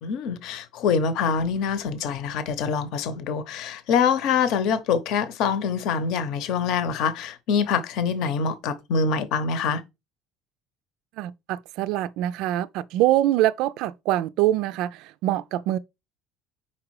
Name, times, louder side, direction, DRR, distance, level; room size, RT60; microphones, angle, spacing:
voice 1, 0.0-9.8, left 6 dB, 65° left, 0.9 m, -25 dB
voice 2, 11.2-15.8, right 14 dB, 70° right, 0.3 m, -24 dB
4.8 x 4.3 x 4.7 m
cardioid pair, 145°, 0 cm